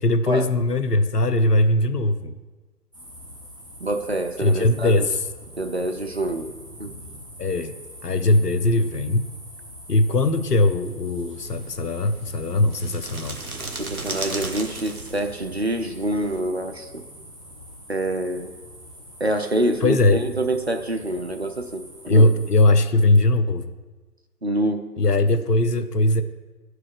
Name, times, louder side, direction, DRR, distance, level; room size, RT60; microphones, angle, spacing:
voice 1, 0.0-2.3 4.4-5.2 7.4-7.7 8.0-9.2 9.9-13.4 19.8-20.2 22.1-23.7 25.0-26.2, left 2 dB, 75° left, 10 dB, 0.8 m, -20 dB
sound 1, 2.9-22.7, equal, 20° right, 0.8 m, -44 dB
voice 2, 3.8-5.1 5.6-6.5 6.8-6.9 13.8-17.0 17.9-18.5 19.2-22.3 24.4-24.9, right 1 dB, 45° right, 7 dB, 0.5 m, -26 dB
sound 2, 11.4-16.4, right 2 dB, 65° right, 1.2 m, -36 dB
9.4 x 4.8 x 4.8 m, 1.2 s
figure-of-eight pair, 150°, 48 cm